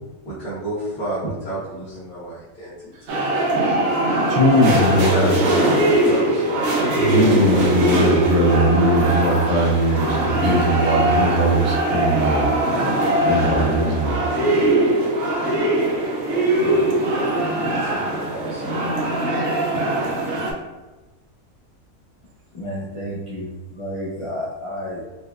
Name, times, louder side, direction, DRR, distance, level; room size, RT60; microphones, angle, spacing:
voice 1, 0.2-2.7 3.1-3.3 5.1-7.1 7.5-7.7 17.6-19.2, right 1 dB, 80° left, -12 dB, 1.5 m, -31 dB
sound 1, 3.1-20.5, right 1 dB, 75° right, 1.2 m, -21 dB
voice 2, 4.3-5.4 6.9-12.5 13.3-14.1, equal, 50° right, -2 dB, 0.5 m, -20 dB
voice 3, 22.5-25.0, equal, 50° left, -7 dB, 0.4 m, -31 dB
4.4 x 2.1 x 2.4 m, 1.1 s
omnidirectional pair, 1.5 m